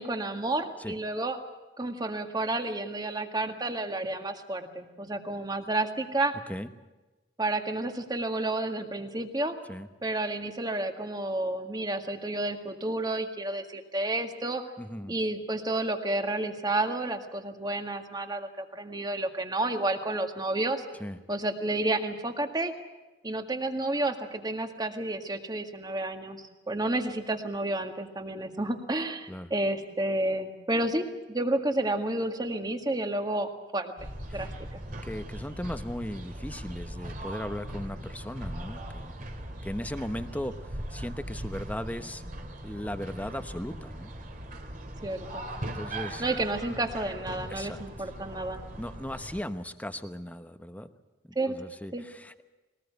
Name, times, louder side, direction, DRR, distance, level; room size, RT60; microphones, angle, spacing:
voice 1, 0.0-1.4 1.8-6.3 7.4-9.5 10.0-14.6 15.1-20.8 21.3-22.7 23.2-33.9 34.3-34.8 45.0-45.5 46.2-48.6 51.4-51.6 51.9-52.0, right 2 dB, 25° right, 5 dB, 1.9 m, -31 dB
voice 2, 14.8-15.1 21.0-21.2 29.3-29.5 34.3-34.5 35.0-39.2 39.6-42.2 42.6-44.2 45.6-46.2 47.5-48.1 48.8-50.9 51.2-52.4, left 1 dB, 10° left, 9 dB, 1.0 m, -37 dB
sound 1, 34.0-49.4, right 1 dB, 50° right, 2.7 m, -40 dB
21.5 x 19.5 x 8.1 m, 1.1 s
head